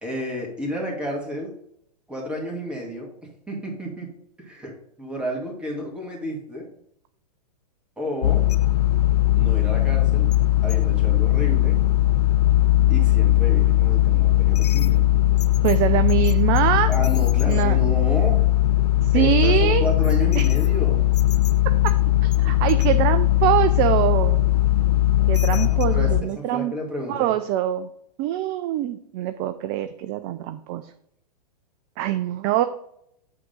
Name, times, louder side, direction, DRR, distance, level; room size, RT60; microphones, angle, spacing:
voice 1, 0.0-1.5 2.1-3.1 3.5-4.1 4.4-6.7 8.0-8.4 9.4-10.3 10.6-11.8 12.9-15.0 16.9-18.4 18.9-21.0 25.5-27.3, equal, 5° right, -2 dB, 2.0 m, -31 dB
sound 1, 8.2-26.2, left 14 dB, 70° left, 0.5 m, -19 dB
voice 2, 15.6-16.9 17.5-17.8 19.1-19.9 20.4-20.5 21.8-21.9 22.2-24.4 25.3-26.7 27.1-27.9 28.2-30.9 32.0-32.6, right 13 dB, 30° right, 11 dB, 0.3 m, -23 dB
8.4 x 3.7 x 5.2 m, 0.72 s
figure-of-eight pair, 110°, 21 cm